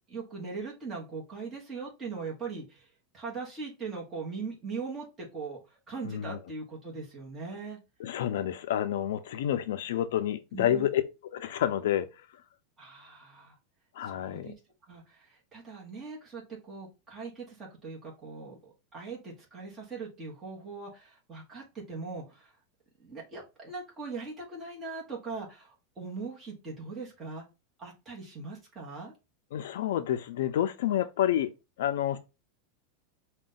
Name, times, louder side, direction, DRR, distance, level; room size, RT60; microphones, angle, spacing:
voice 1, 0.1-2.9 3.1-7.8 10.5-10.8 12.8-13.6 14.0-14.5 14.8-22.5 23.0-27.4 27.8-29.1, right 4 dB, 15° right, 1.0 m, -40 dB
voice 2, 6.0-6.4 8.0-11.0 11.3-12.3 14.0-14.5 29.5-31.5 31.8-32.2, left 11 dB, 70° left, 0.4 m, -29 dB
4.9 x 2.2 x 3.8 m
supercardioid pair, 175°, 0 cm